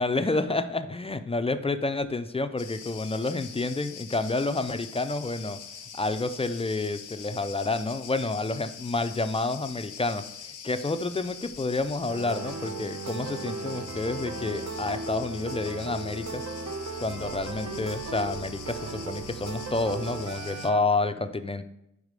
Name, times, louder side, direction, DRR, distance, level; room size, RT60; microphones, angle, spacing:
voice 1, 0.0-5.6 5.9-16.4 17.0-21.6, left 3 dB, 20° left, 10 dB, 0.3 m, -29 dB
Cricket, 2.6-20.7, left 7 dB, 75° left, 0.6 m, -44 dB
sound 1, 12.1-20.8, right 3 dB, 60° right, 0.8 m, -36 dB
4.8 x 4.8 x 5.1 m, 0.83 s
wide cardioid pair, 85°, 31 cm